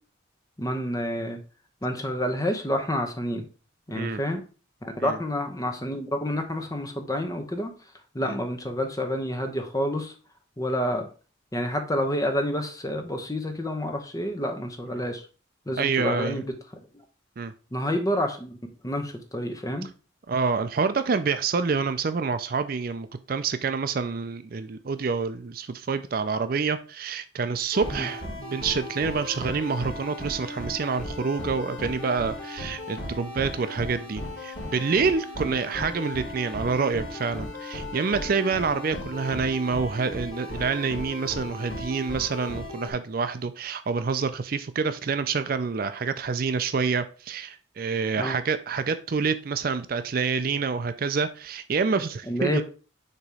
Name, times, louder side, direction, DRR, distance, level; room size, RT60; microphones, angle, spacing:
voice 1, 0.6-1.4 1.8-3.4 3.9-4.4 4.8-7.7 8.1-10.1 10.6-11.1 11.5-15.3 15.7-16.4 16.7-16.9 17.7-18.6 18.8-19.9 27.9-28.1 35.4-35.6 48.2-48.4 52.3-52.6, equal, 15° left, 5 dB, 0.8 m, -28 dB
voice 2, 15.8-16.4 17.4-17.5 20.3-52.6, right 5 dB, 45° right, 11 dB, 0.4 m, -27 dB
sound 1, 27.7-42.9, left 1 dB, 75° left, 2.5 m, -36 dB
6.7 x 3.0 x 4.8 m, 0.36 s
head